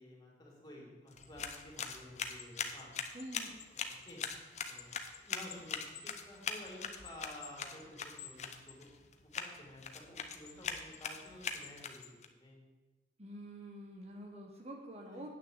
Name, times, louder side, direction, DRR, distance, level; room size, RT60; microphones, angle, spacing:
voice 1, 0.0-2.9 3.7-4.2 4.7-8.9 9.4-12.6 15.1-15.3, left 1 dB, 20° left, -3 dB, 3.1 m, -52 dB
sound 1, 1.1-12.3, left 6 dB, 40° left, 0.8 m, -42 dB
voice 2, 3.1-3.6 13.2-15.3, right 1 dB, 35° right, 2 dB, 1.1 m, -47 dB
9.0 x 6.4 x 8.0 m, 1.2 s
head